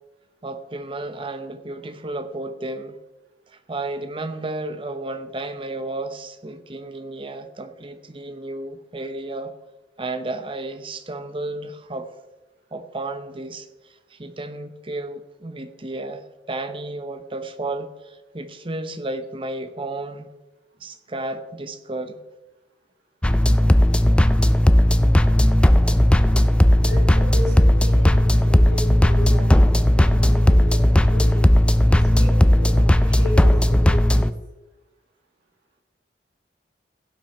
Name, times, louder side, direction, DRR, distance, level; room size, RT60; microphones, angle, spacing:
voice 1, 0.4-3.0 3.5-9.5 10.0-12.1 12.7-13.7 14.1-20.3 20.8-22.2, right 2 dB, 30° right, 0.8 m, -32 dB
sound 1, 23.2-34.3, left 1 dB, 5° left, 0.3 m, -16 dB
voice 2, 26.8-31.5 31.9-34.3, equal, 75° right, 2.0 m, -34 dB
16.5 x 5.9 x 4.4 m
head